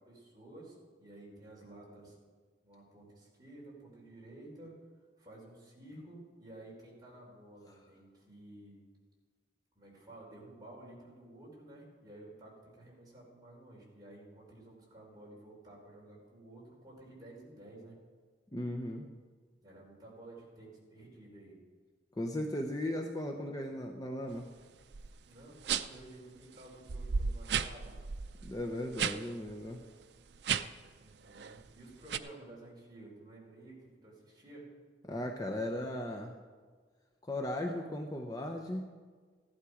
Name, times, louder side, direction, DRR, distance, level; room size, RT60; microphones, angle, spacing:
voice 1, 0.0-2.2 2.6-4.8 5.2-8.8 9.7-18.0 19.6-21.6 25.2-28.0 31.0-34.7, right 1 dB, 25° right, -4 dB, 4.3 m, -53 dB
voice 2, 18.5-19.1 22.1-24.5 28.4-29.8 35.0-36.4 37.3-38.9, left 1 dB, 20° left, 2 dB, 0.8 m, -37 dB
sound 1, 24.9-25.1 25.6-26.0 26.5-26.6 26.9-29.2 29.5-29.7 30.3-30.9 31.3-31.6 32.1-32.2, right 6 dB, 70° right, 0.5 m, -34 dB
15.0 x 11.5 x 5.0 m, 1.5 s
head